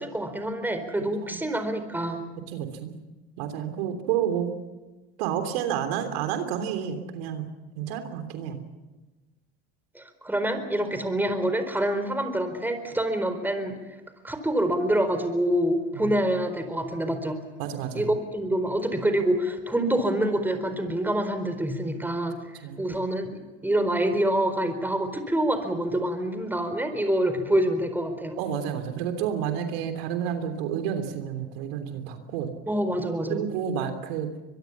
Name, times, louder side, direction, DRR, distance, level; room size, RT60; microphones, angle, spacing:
voice 1, 0.0-2.2 9.9-13.7 14.2-17.4 17.9-22.4 22.8-28.4 32.7-33.4, right 1 dB, 5° right, 8 dB, 4.4 m, -26 dB
voice 2, 2.5-2.9 3.4-4.5 5.2-7.5 7.8-8.6 15.9-16.2 17.6-18.1 22.6-22.8 28.4-32.5 33.3-34.3, right 9 dB, 70° right, 7 dB, 3.3 m, -30 dB
24.0 x 22.0 x 7.3 m, 1.2 s
hypercardioid pair, 95°, 30 cm